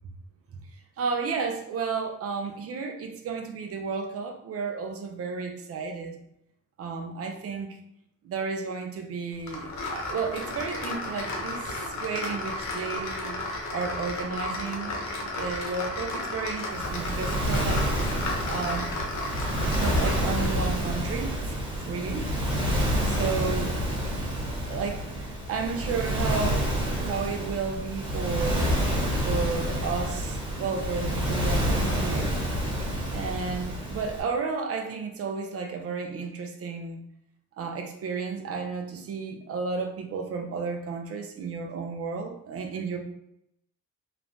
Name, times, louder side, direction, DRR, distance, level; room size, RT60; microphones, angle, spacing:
voice 1, 1.0-6.2 6.8-7.8 8.2-13.3 13.7-17.9 18.5-18.9 19.8-21.4 21.8-22.3 23.0-23.8 24.6-26.7 27.0-28.7 29.2-32.4 33.1-37.0 37.6-43.0, right 5 dB, 50° right, 4 dB, 0.5 m, -32 dB
sound 1, 9.5-20.6, left 2 dB, 65° left, 0.7 m, -33 dB
Waves surf, 16.7-34.2, equal, 15° right, 1.1 m, -28 dB
3.1 x 2.1 x 2.6 m, 0.79 s
cardioid pair, 90°, 30 cm